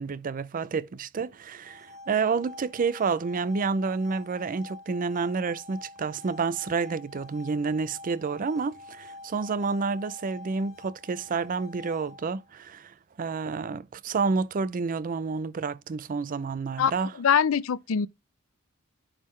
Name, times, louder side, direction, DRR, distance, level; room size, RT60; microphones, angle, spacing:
voice 1, 0.0-17.1, right 4 dB, 40° right, 0.4 m, -29 dB
sound 1, 1.5-12.5, left 2 dB, 80° left, 1.0 m, -47 dB
voice 2, 16.8-18.1, left 7 dB, 65° left, 0.4 m, -24 dB
10.5 x 3.7 x 3.2 m
head